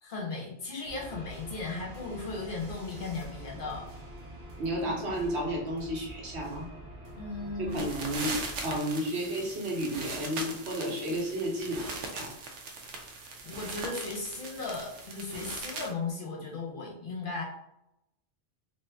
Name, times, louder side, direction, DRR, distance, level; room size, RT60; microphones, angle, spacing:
voice 1, 0.0-3.8 4.8-4.9 7.2-7.9 13.4-17.4, left 3 dB, 55° left, -1 dB, 0.8 m, -36 dB
sound 1, 0.8-8.8, right 1 dB, 45° right, 0.6 m, -45 dB
voice 2, 4.6-6.7 7.6-8.3 8.6-12.3, equal, 70° right, -2 dB, 1.2 m, -32 dB
sound 2, 7.6-15.9, right 3 dB, 85° right, 0.9 m, -40 dB
2.6 x 2.5 x 3.3 m, 0.81 s
omnidirectional pair, 1.2 m